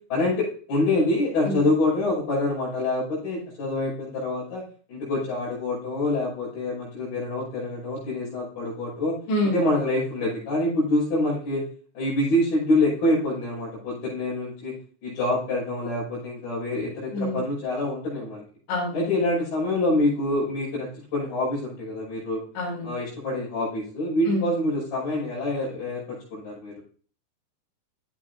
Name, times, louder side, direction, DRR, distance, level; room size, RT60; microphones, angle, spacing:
voice 1, 0.1-4.6 4.9-9.2 9.5-11.6 12.0-14.7 15.0-18.4 18.9-22.4 22.8-26.8, left 1 dB, 50° left, -8 dB, 7.1 m, -26 dB
voice 2, 9.3-9.6 17.1-17.4 18.7-19.1 22.6-22.9 24.3-24.4, left 1 dB, 85° left, -1 dB, 5.3 m, -26 dB
14.5 x 8.4 x 2.7 m, 0.42 s
omnidirectional pair, 5.1 m